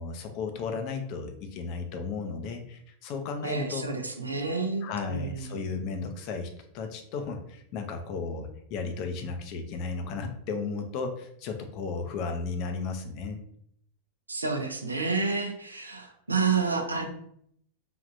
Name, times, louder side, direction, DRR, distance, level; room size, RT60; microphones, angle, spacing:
voice 1, 0.0-3.8 4.8-13.4, left 4 dB, 40° left, 5 dB, 0.5 m, -34 dB
voice 2, 3.4-5.6 14.3-17.1, right 4 dB, 80° right, 4 dB, 0.5 m, -29 dB
3.5 x 2.4 x 2.6 m, 0.67 s
figure-of-eight pair, 90°, 0 cm